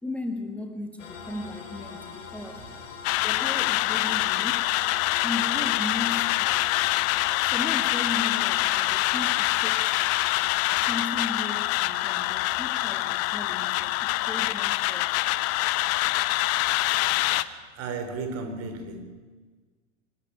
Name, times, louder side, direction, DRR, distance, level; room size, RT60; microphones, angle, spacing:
voice 1, 0.0-2.8 3.2-4.7 5.2-6.7 7.4-10.0 10.7-15.1 15.4-15.5, left 2 dB, 5° left, 1.5 m, -36 dB
sound 1, 1.0-18.1, left 5 dB, 80° left, 4.4 m, -45 dB
sound 2, 3.0-17.4, left 18 dB, 40° left, 0.9 m, -25 dB
voice 2, 17.7-19.0, right 4 dB, 40° right, 3.9 m, -34 dB
25.0 x 12.5 x 9.0 m
hypercardioid pair, 105°, 38 cm